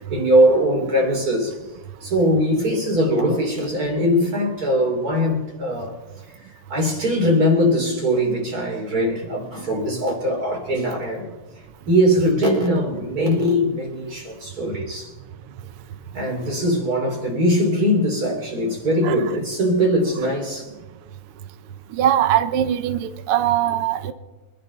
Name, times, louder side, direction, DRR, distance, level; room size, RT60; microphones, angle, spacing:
voice 1, 0.0-1.6 2.0-5.9 6.7-11.3 11.9-15.1 16.1-20.7, equal, 30° right, 3.5 m, -21 dB
voice 2, 21.9-24.1, right 11 dB, 80° right, 1.3 m, -21 dB
24.5 x 11.0 x 4.0 m
omnidirectional pair, 3.7 m